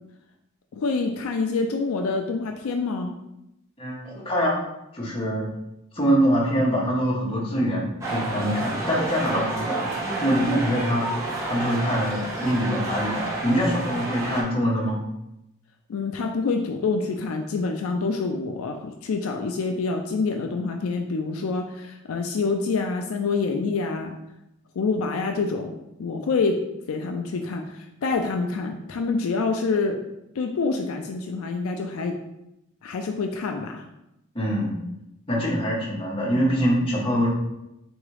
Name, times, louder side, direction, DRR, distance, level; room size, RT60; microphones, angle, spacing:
voice 1, 0.7-3.1 15.9-24.2 24.8-25.7 26.0-26.6 26.9-30.0 30.4-32.2 32.8-33.8, left 4 dB, 70° left, 3 dB, 0.4 m, -26 dB
voice 2, 3.8-4.6 4.9-5.5 5.9-9.8 10.2-11.1 11.4-15.0 34.3-34.7 35.3-37.3, equal, 25° left, -4 dB, 1.0 m, -24 dB
sound 1, 8.0-14.4, right 2 dB, 15° right, 0.9 m, -30 dB
4.0 x 3.5 x 3.3 m, 0.87 s
head